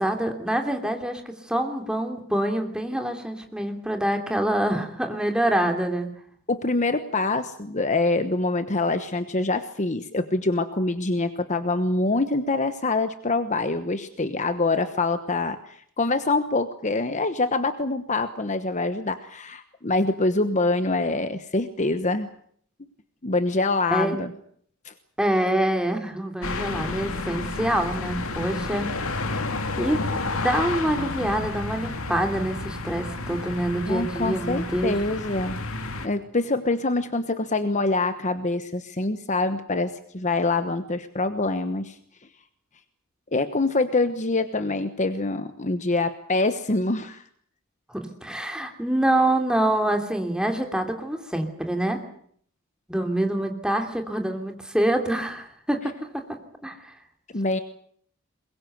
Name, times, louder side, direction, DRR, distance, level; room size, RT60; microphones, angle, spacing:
voice 1, 0.0-6.1 23.9-24.2 25.2-28.9 29.8-30.0 30.4-35.0 47.9-52.0 52.9-55.9 56.6-56.9, right 1 dB, 5° right, 4 dB, 3.1 m, -26 dB
voice 2, 6.5-15.6 16.0-22.3 23.2-24.3 24.8-24.9 33.9-35.6 36.0-42.0 43.3-47.2 57.3-57.6, left 2 dB, 35° left, 10 dB, 1.1 m, -25 dB
sound 1, 26.4-36.1, left 3 dB, 70° left, 2.4 m, -31 dB
22.5 x 21.5 x 8.0 m, 0.63 s
head